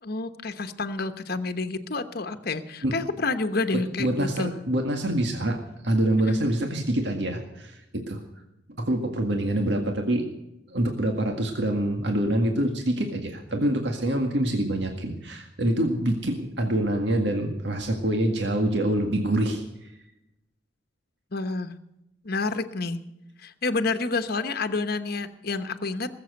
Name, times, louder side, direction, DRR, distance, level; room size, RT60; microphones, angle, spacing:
voice 1, 0.0-4.5 6.1-6.5 21.3-21.7 22.2-23.0 23.4-26.1, left 3 dB, 55° left, 8 dB, 1.1 m, -29 dB
voice 2, 4.0-5.6 5.8-8.2 8.8-10.3 10.7-19.9, right 1 dB, 65° right, 3 dB, 1.9 m, -25 dB
20.0 x 7.8 x 7.9 m, 0.87 s
head